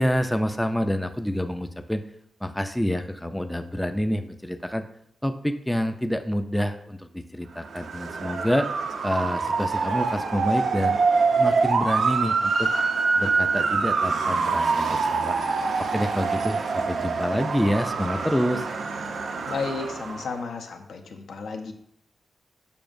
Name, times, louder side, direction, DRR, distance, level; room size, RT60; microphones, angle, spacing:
voice 1, 0.0-2.0 2.4-4.8 5.2-8.7 9.0-11.0 11.3-12.7 13.2-15.4 15.8-18.7, equal, 5° left, 7 dB, 0.3 m, -27 dB
Motor vehicle (road) / Siren, 7.6-20.3, right 4 dB, 75° right, 0.6 m, -25 dB
voice 2, 19.5-21.7, left 4 dB, 90° left, 4 dB, 0.7 m, -33 dB
6.9 x 6.0 x 2.5 m, 0.72 s
wide cardioid pair, 130°, 0 cm